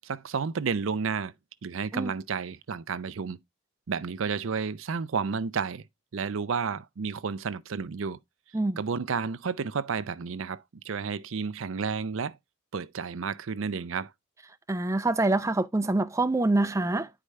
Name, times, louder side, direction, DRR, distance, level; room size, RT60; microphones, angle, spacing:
voice 1, 0.0-1.3 1.6-3.4 3.9-5.8 6.1-8.2 8.8-12.4 12.7-14.1, right 5 dB, 70° right, 0.5 m, -31 dB
voice 2, 14.7-17.1, right 2 dB, 15° right, 0.4 m, -25 dB
9.7 x 4.8 x 3.2 m
head